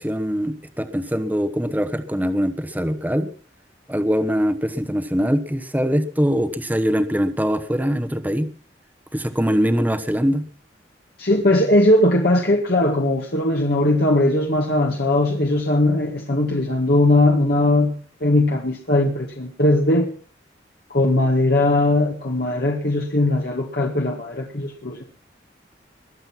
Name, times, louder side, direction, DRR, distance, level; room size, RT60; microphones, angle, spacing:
voice 1, 0.0-3.3 3.9-8.5 9.1-10.5, equal, 10° right, 1.1 m, -22 dB
voice 2, 11.2-20.1 20.9-25.0, left 1 dB, 60° left, 1.9 m, -19 dB
22.0 x 7.9 x 5.9 m
head